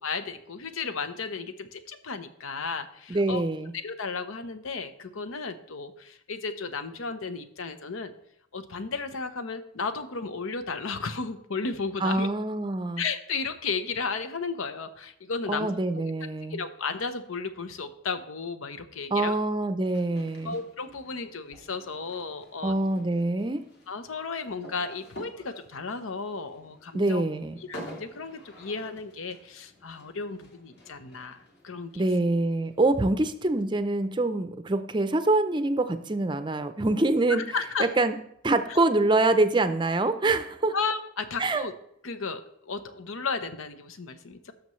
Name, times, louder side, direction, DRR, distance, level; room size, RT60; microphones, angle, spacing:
voice 1, 0.0-3.4 3.7-8.1 8.5-12.3 13.0-15.7 16.0-16.1 16.5-19.3 20.4-22.8 23.9-27.2 27.6-32.0 37.3-37.9 38.7-38.8 40.7-41.7 42.0-44.5, left 4 dB, 85° left, 10 dB, 0.8 m, -34 dB
voice 2, 3.1-3.7 12.0-13.0 15.5-16.6 19.1-20.5 22.6-23.6 26.9-27.6 32.0-37.4 37.8-38.1 38.4-40.7 41.4-41.6, right 2 dB, 25° right, 10 dB, 0.5 m, -25 dB
sound 1, 19.8-32.7, equal, 55° left, 2.0 m, -49 dB
16.5 x 6.5 x 3.1 m, 0.73 s
head